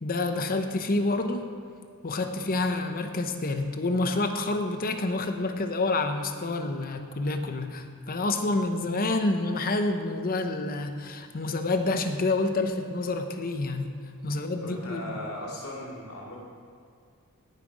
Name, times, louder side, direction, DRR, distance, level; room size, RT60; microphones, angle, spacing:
voice 1, 0.0-1.5 2.0-13.9 14.2-15.2, left 2 dB, 40° left, 7 dB, 0.7 m, -28 dB
voice 2, 14.6-16.4, left 1 dB, 75° left, -3 dB, 2.6 m, -38 dB
17.0 x 5.8 x 4.9 m, 2.3 s
head